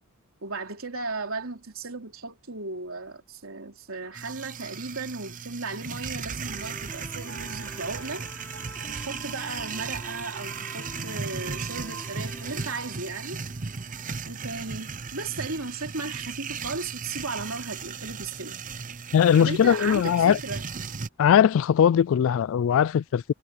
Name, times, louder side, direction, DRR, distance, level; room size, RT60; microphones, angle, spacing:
voice 1, 0.4-8.3 8.9-13.4 14.3-18.6 19.4-20.6, right 3 dB, 70° right, 3.7 m, -35 dB
sound 1, 4.2-21.1, right 5 dB, 40° right, 0.7 m, -36 dB
sound 2, 6.5-14.6, left 1 dB, 10° left, 5.7 m, -47 dB
sound 3, 7.3-12.3, right 5 dB, 85° right, 8.0 m, -46 dB
voice 2, 19.1-20.4 21.2-23.3, left 8 dB, 65° left, 0.3 m, -20 dB
head